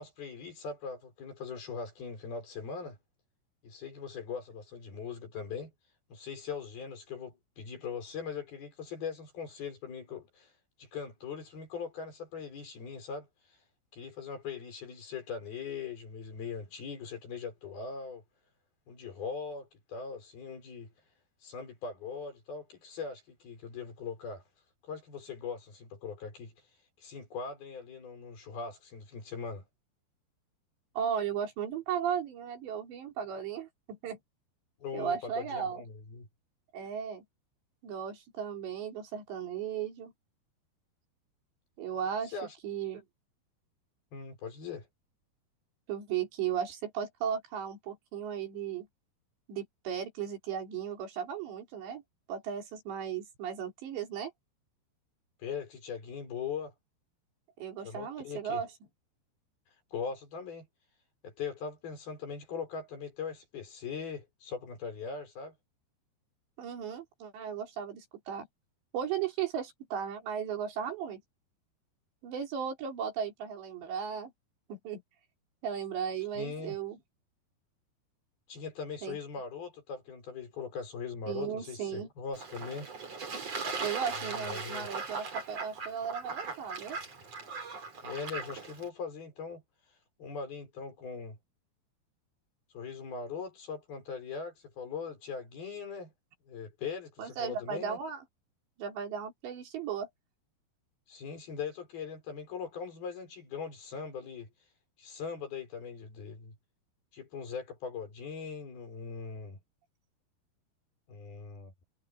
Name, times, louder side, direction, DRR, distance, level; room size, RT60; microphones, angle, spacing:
voice 1, 0.0-3.0 3.6-5.7 6.1-10.5 10.8-13.3 13.9-18.2 18.9-20.9 21.4-24.4 24.8-26.5 27.0-29.6 34.8-36.3 42.3-42.6 44.1-44.9 55.4-56.7 57.8-58.6 59.9-60.7 61.2-65.6 76.3-76.8 78.5-82.9 84.1-84.9 88.0-89.6 90.2-91.4 92.7-96.1 96.5-98.0 101.1-104.5 105.0-106.6 107.1-109.6 111.1-111.7, left 5 dB, 60° left, 7.4 m, -40 dB
voice 2, 31.0-34.2 34.9-35.8 36.7-37.2 37.8-40.1 41.8-42.3 42.6-43.0 45.9-48.9 49.5-52.0 52.3-54.3 57.6-58.7 66.6-68.5 68.9-71.2 72.2-74.3 74.7-75.0 75.6-77.0 79.0-79.2 81.3-82.1 83.8-87.0 97.2-98.2 98.8-100.1, right 8 dB, 90° right, 6.1 m, -36 dB
Fowl / Bird / Water, 82.3-88.9, right 4 dB, 35° right, 5.0 m, -39 dB
omnidirectional pair, 4.9 m